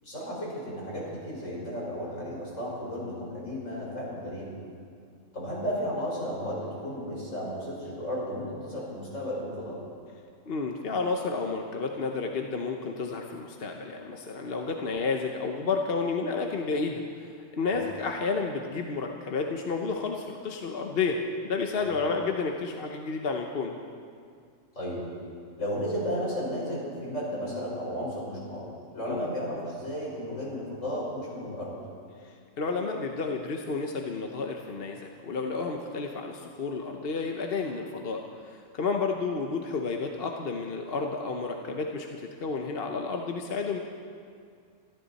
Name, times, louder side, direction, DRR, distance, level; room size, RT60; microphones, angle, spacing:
voice 1, 0.0-4.5 5.3-9.8 17.6-17.9 21.7-21.9 24.8-25.1 25.6-31.8, equal, 70° left, -5 dB, 5.2 m, -34 dB
voice 2, 10.5-17.3 17.5-23.8 29.1-29.3 32.2-43.8, left 4 dB, 50° left, 3 dB, 1.1 m, -31 dB
25.5 x 13.5 x 4.1 m, 2.3 s
omnidirectional pair, 1.4 m